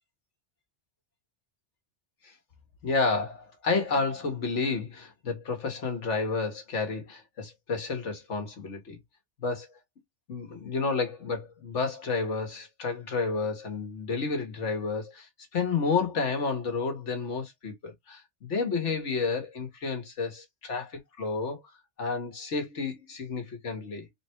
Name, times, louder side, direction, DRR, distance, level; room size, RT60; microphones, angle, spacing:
voice 1, 2.8-9.0 9.4-9.7 10.3-21.6 22.0-24.1, left 4 dB, 85° left, 1.6 m, -31 dB
3.9 x 2.3 x 4.3 m
omnidirectional pair, 1.2 m